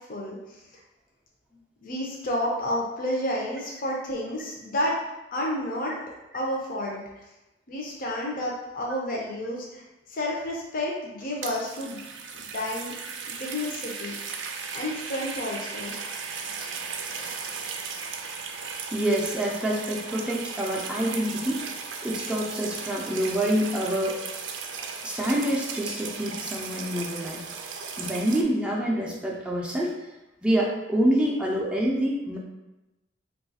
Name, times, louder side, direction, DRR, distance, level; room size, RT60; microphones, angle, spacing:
voice 1, 0.1-0.6 1.8-5.0 5.3-5.9 6.3-7.2 7.7-12.0 12.3-12.9 13.3-14.2 14.7-16.0, left 1 dB, 50° left, -2 dB, 0.5 m, -30 dB
sound 1, 11.2-28.4, right 5 dB, 70° right, 0.4 m, -36 dB
voice 2, 18.9-21.6 22.0-24.2 25.0-27.5 28.0-29.9 30.4-32.4, right 1 dB, 5° right, -3 dB, 0.4 m, -26 dB
3.1 x 2.3 x 4.0 m, 1.0 s
head